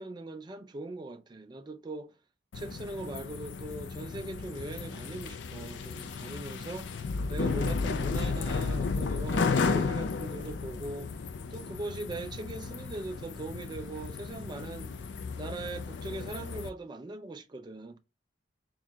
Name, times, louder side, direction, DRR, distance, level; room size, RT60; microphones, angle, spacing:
voice 1, 0.0-2.2 2.5-11.1 11.5-14.9 15.4-18.0, right 2 dB, 20° right, 0.3 m, -40 dB
sound 1, 2.5-16.7, left 4 dB, 60° left, 0.4 m, -33 dB
3.6 x 2.4 x 4.1 m
head